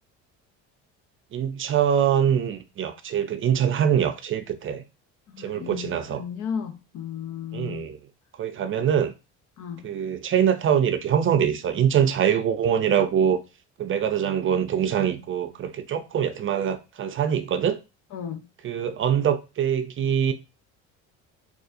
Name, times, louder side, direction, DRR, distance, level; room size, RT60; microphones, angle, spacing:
voice 1, 1.3-4.8 5.4-6.2 7.5-8.0 8.4-9.1 9.8-13.4 13.8-17.8 18.6-20.3, right 8 dB, 35° right, 0.5 m, -24 dB
voice 2, 5.3-7.9 9.6-9.9 18.1-18.4, left 7 dB, 60° left, 0.8 m, -34 dB
4.0 x 2.4 x 2.6 m
supercardioid pair, 70°, 34 cm